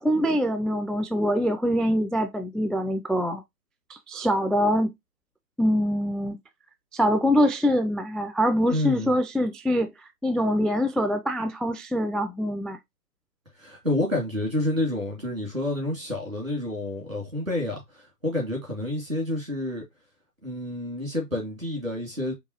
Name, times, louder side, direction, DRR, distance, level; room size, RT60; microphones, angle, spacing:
voice 1, 0.0-3.4 3.9-4.9 5.6-6.4 6.9-12.8, equal, ahead, 0.3 m, -24 dB
voice 2, 8.7-9.1 13.6-19.8 20.4-22.3, left 1 dB, 50° right, 2.3 m, -29 dB
4.6 x 2.8 x 2.9 m
figure-of-eight pair, 180°, 49 cm